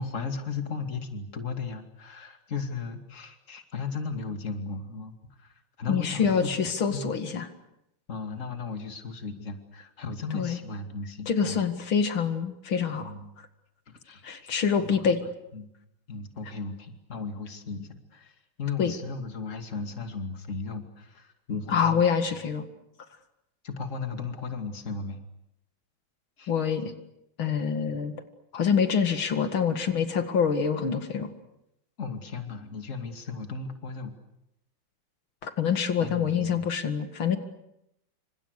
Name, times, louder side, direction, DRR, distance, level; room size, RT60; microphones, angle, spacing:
voice 1, 0.0-7.1 8.1-11.6 13.0-13.3 14.0-14.5 14.8-15.1 15.5-15.7 16.1-22.4 23.6-25.2 26.4-26.5 32.0-34.2 36.0-36.6, left 4 dB, 40° left, 6 dB, 2.8 m, -36 dB
voice 2, 5.9-7.5 10.3-10.6 11.3-13.1 14.2-15.2 18.8-18.9 21.7-22.6 26.5-26.9 27.4-28.1 28.5-31.3 35.4-37.4, left 6 dB, 85° left, 8 dB, 2.8 m, -26 dB
29.5 x 26.5 x 6.6 m, 0.83 s
omnidirectional pair, 2.2 m